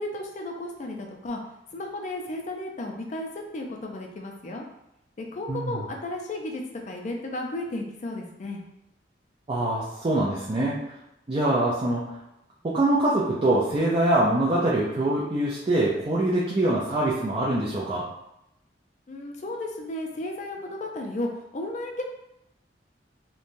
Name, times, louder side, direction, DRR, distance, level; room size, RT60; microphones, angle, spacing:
voice 1, 0.0-1.4 1.7-4.6 5.2-8.6 19.1-22.0, left 1 dB, 40° left, 1 dB, 0.4 m, -34 dB
voice 2, 5.5-5.8 9.5-10.7 11.3-12.0 12.6-18.0, right 1 dB, 30° right, -7 dB, 0.4 m, -24 dB
3.1 x 2.2 x 2.5 m, 0.83 s
head